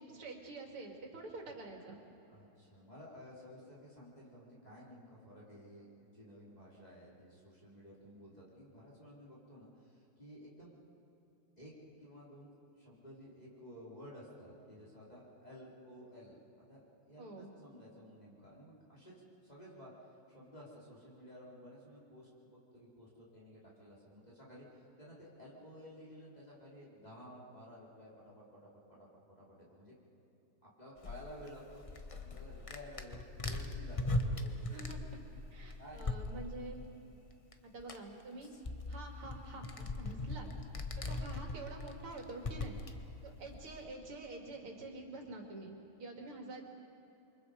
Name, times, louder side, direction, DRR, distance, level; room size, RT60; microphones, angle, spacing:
voice 1, 0.0-2.0 17.2-17.5 34.7-35.0 35.5-36.8 37.7-38.5 38.9-40.5 40.7-42.8 43.2-46.6, right 2 dB, 90° right, 2 dB, 3.4 m, -47 dB
voice 2, 2.3-10.8 11.6-11.7 12.0-12.5 12.8-19.2 19.4-29.9 30.6-31.8 32.2-34.9 35.8-36.4, equal, 20° left, -7 dB, 4.0 m, -54 dB
sound 1, 31.0-36.7 37.5-37.6 37.8-43.8, left 2 dB, 35° left, 0.5 m, -40 dB
28.5 x 24.0 x 5.1 m, 2.9 s
omnidirectional pair, 2.3 m